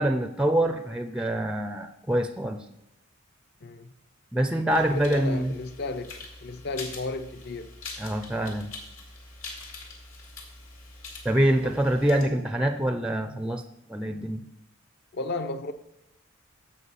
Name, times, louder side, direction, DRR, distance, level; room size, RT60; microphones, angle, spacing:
voice 1, 0.0-2.6 4.3-5.5 8.0-8.7 11.2-13.6 13.9-14.5, right 1 dB, 5° right, 0.4 m, -25 dB
voice 2, 3.6-3.9 4.7-7.7 11.6-11.8 15.1-15.7, left 3 dB, 50° left, 0.6 m, -34 dB
sound 1, 4.7-12.2, left 3 dB, 70° left, 2.5 m, -44 dB
15.5 x 5.9 x 4.1 m
head